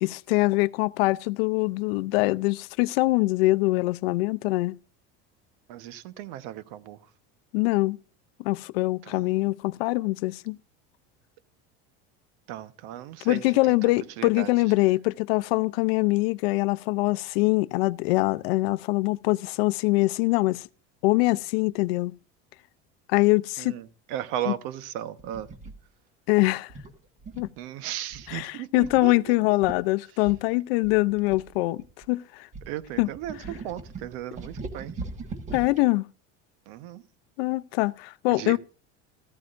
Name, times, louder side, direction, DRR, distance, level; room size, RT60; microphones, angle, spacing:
voice 1, 0.0-4.7 7.5-8.0 8.4-10.6 13.2-20.7 21.0-22.1 23.1-23.8 24.5-24.6 26.3-26.7 27.4-27.5 28.3-32.5 33.0-33.1 35.5-36.1 37.4-38.6, left 22 dB, 90° left, 0.6 m, -24 dB
voice 2, 5.7-7.0 9.0-9.3 12.5-14.7 23.6-25.5 27.6-29.6 32.7-34.9 36.7-37.0 38.3-38.6, right 12 dB, 70° right, 1.2 m, -36 dB
sound 1, 25.2-25.7 26.7-27.6 28.1-28.4 28.8-29.0 29.3-29.4 29.6-29.8 30.2-32.1 32.5-35.8, right 3 dB, 25° right, 1.5 m, -40 dB
14.5 x 14.0 x 2.5 m
cardioid pair, 165°, 29 cm